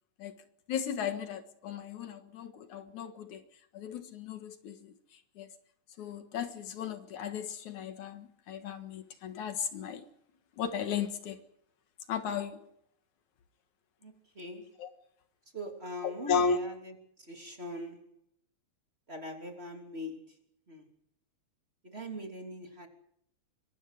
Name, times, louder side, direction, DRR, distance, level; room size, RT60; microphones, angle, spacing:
voice 1, 0.7-3.4 3.7-5.5 6.0-10.1 10.6-11.4 12.1-12.7 14.8-14.9 16.0-16.6, left 7 dB, 80° left, 3.0 m, -35 dB
voice 2, 14.0-14.7 15.5-16.9 17.3-18.1 19.1-20.3 20.7-20.9 21.8-22.9, left 1 dB, 20° right, 3.2 m, -42 dB
25.5 x 23.5 x 5.0 m
omnidirectional pair, 3.4 m